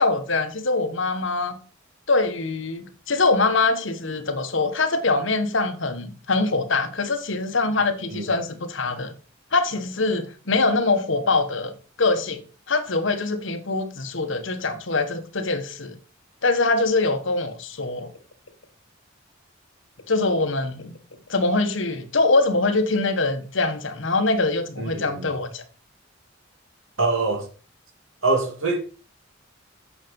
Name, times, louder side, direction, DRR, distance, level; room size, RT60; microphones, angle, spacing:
voice 1, 0.0-1.6 2.1-9.1 9.5-12.4 12.7-16.0 16.4-18.1 20.1-21.0 21.3-25.6, left 3 dB, 65° left, 1.4 m, -23 dB
voice 2, 24.8-25.3 27.0-27.5 28.2-28.8, right 3 dB, 75° right, 2.7 m, -24 dB
8.7 x 6.5 x 5.4 m
head